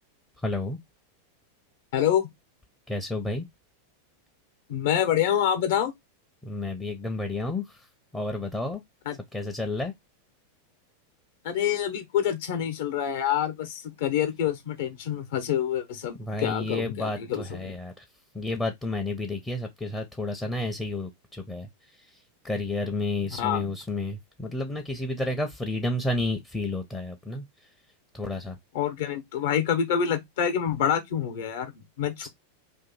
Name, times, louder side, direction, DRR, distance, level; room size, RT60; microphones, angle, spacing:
voice 1, 0.4-0.8 2.9-3.5 6.4-7.8 8.1-8.8 9.3-9.9 16.2-18.0 18.3-21.7 22.4-27.4 28.1-28.6 32.2-32.3, left 2 dB, 10° left, 0.5 m, -31 dB
voice 2, 1.9-2.3 4.7-5.9 9.1-9.2 11.4-17.8 23.3-23.8 28.7-32.3, left 9 dB, 55° left, 0.8 m, -27 dB
2.7 x 2.6 x 3.8 m
figure-of-eight pair, 90°, 0 cm